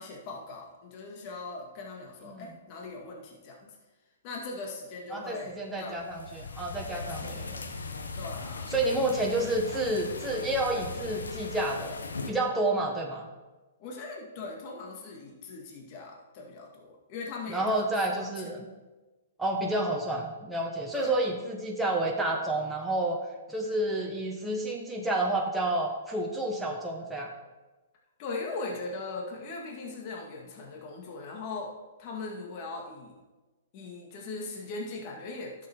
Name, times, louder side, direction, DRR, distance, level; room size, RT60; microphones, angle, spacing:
voice 1, 0.0-3.8 4.2-6.0 6.9-7.7 8.2-8.7 13.8-18.3 20.9-21.2 28.2-31.7 32.0-33.2 33.7-35.5, left 3 dB, 40° left, 0 dB, 2.0 m, -40 dB
voice 2, 5.1-7.5 8.7-12.0 12.3-13.3 17.5-18.6 19.4-23.2 23.5-27.3, right 1 dB, 5° right, -2 dB, 1.3 m, -30 dB
sound 1, 5.8-12.3, left 3 dB, 90° left, 1.1 m, -39 dB
11.0 x 7.2 x 4.6 m, 1.2 s
hypercardioid pair, 130°, 0 cm